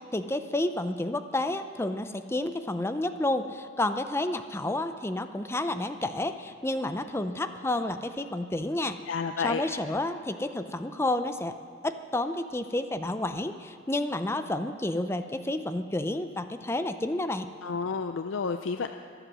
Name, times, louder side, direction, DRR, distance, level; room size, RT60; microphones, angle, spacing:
voice 1, 0.1-9.0 9.4-11.6 11.8-17.5, left 1 dB, 15° left, 10 dB, 0.5 m, -30 dB
voice 2, 9.1-9.6 17.6-18.9, left 5 dB, 80° left, 8 dB, 0.5 m, -30 dB
23.5 x 8.1 x 6.2 m, 2.3 s
head